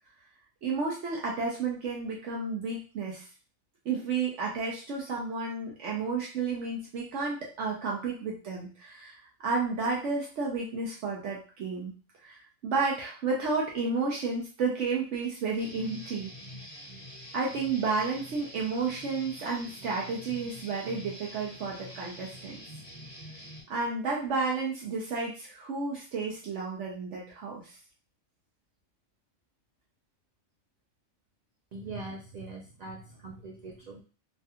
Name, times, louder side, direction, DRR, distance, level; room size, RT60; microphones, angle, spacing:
voice 1, 0.6-3.2 3.8-9.2 9.4-11.9 12.2-16.3 17.3-22.6 23.7-27.6, right 4 dB, 70° right, -2 dB, 1.0 m, -31 dB
Guitar, 15.6-23.6, equal, 20° left, 1.1 m, -46 dB
voice 2, 31.7-34.0, right 3 dB, 90° right, -2 dB, 0.3 m, -42 dB
3.3 x 2.3 x 2.7 m, 0.35 s
omnidirectional pair, 1.3 m